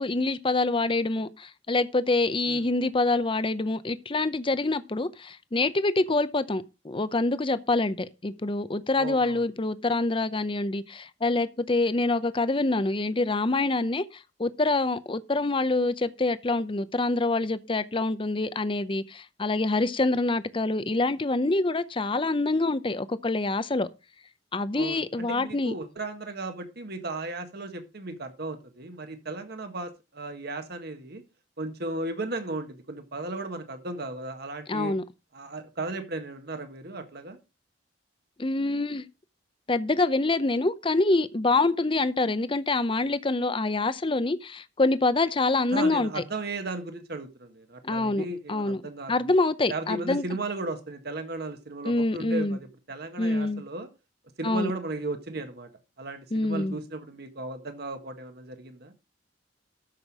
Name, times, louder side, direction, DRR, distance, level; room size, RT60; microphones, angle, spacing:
voice 1, 0.0-23.9 24.5-25.7 34.7-35.0 38.4-39.0 39.7-46.1 47.8-48.8 49.1-50.2 51.8-52.6 53.2-53.6 54.4-54.7 56.3-56.8, left 2 dB, 25° left, 0.7 m, -26 dB
voice 2, 9.0-9.4 24.7-31.2 31.6-34.9 35.3-37.4 45.7-49.3 49.7-53.9 54.4-55.7 56.0-58.9, right 2 dB, 55° right, 1.7 m, -35 dB
13.5 x 5.9 x 4.8 m
head